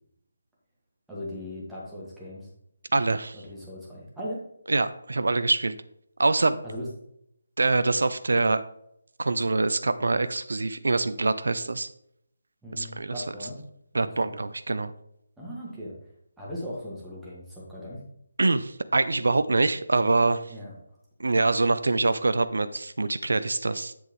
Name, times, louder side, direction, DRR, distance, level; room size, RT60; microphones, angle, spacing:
voice 1, 1.1-2.5 3.4-4.4 6.6-6.9 12.6-13.6 14.0-14.3 15.4-15.9 16.4-18.0 20.5-20.7, equal, 5° right, -8 dB, 2.0 m, -38 dB
voice 2, 2.9-3.4 4.7-5.8 6.2-6.6 7.6-8.6 9.2-11.9 12.7-13.2 13.9-14.9 18.4-20.5 21.2-23.9, right 3 dB, 60° right, 12 dB, 0.4 m, -24 dB
7.9 x 6.5 x 3.2 m, 0.76 s
figure-of-eight pair, 150°, 0 cm